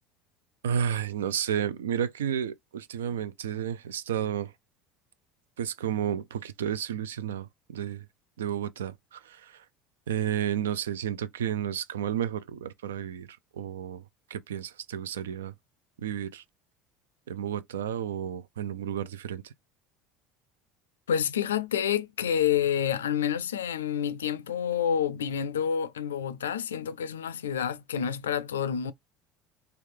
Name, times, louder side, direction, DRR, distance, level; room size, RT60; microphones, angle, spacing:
voice 1, 0.6-4.5 5.6-8.1 8.4-9.6 10.1-13.3 13.5-14.0 14.3-15.5 16.0-16.4 17.3-19.5, right 9 dB, 80° right, 0.3 m, -32 dB
voice 2, 21.1-28.9, left 8 dB, 85° left, 0.3 m, -28 dB
3.2 x 2.4 x 3.1 m
hypercardioid pair, 70°, 0 cm